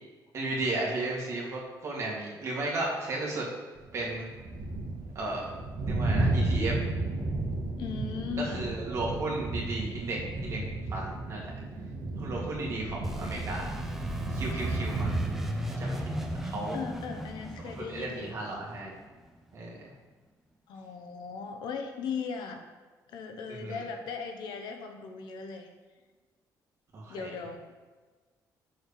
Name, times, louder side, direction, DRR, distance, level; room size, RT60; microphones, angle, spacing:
voice 1, 0.3-3.5 3.9-4.3 5.2-5.5 5.9-6.7 8.4-10.6 10.9-11.5 12.2-13.8 14.3-15.1 15.8-16.8 17.9-18.9 19.5-19.9 23.6-23.8 26.9-27.3, right 2 dB, 40° right, -3 dB, 2.1 m, -34 dB
sound 1, 3.8-16.5, right 2 dB, 60° right, 1.6 m, -33 dB
voice 2, 7.8-8.7 16.7-18.4 20.7-22.7 23.1-25.7 27.1-27.8, left 5 dB, 80° left, 5 dB, 1.0 m, -38 dB
sound 2, 13.0-19.6, equal, 5° right, 0.7 m, -38 dB
6.3 x 4.9 x 6.7 m, 1.4 s
cardioid pair, 140°, 7 cm